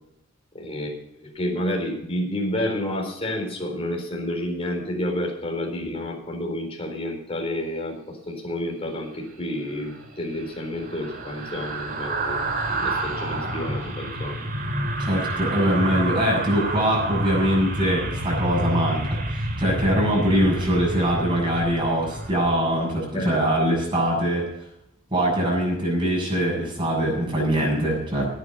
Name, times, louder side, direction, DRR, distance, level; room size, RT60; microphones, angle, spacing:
voice 1, 0.5-12.4 12.7-14.4 23.1-23.7, left 1 dB, 30° left, 1 dB, 4.1 m, -30 dB
sound 1, 9.7-23.0 23.4-23.6, right 1 dB, 45° right, 2.9 m, -29 dB
voice 2, 15.0-24.5 25.1-28.3, equal, 25° right, -2 dB, 7.3 m, -23 dB
17.0 x 9.9 x 5.6 m, 0.78 s
head